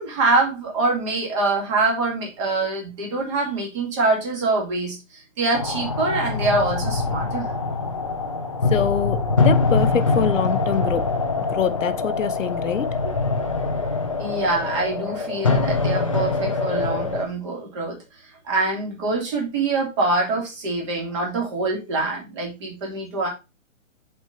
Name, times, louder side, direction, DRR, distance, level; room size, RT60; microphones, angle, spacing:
voice 1, 0.0-7.5 13.0-13.1 14.2-18.0 18.4-23.3, right 3 dB, 25° right, 2.4 m, -24 dB
sound 1, 5.5-17.2, left 3 dB, 25° left, 0.5 m, -23 dB
voice 2, 8.7-11.1 11.4-13.0, left 8 dB, 75° left, 0.9 m, -25 dB
5.5 x 4.5 x 4.9 m
hypercardioid pair, 170°, 39 cm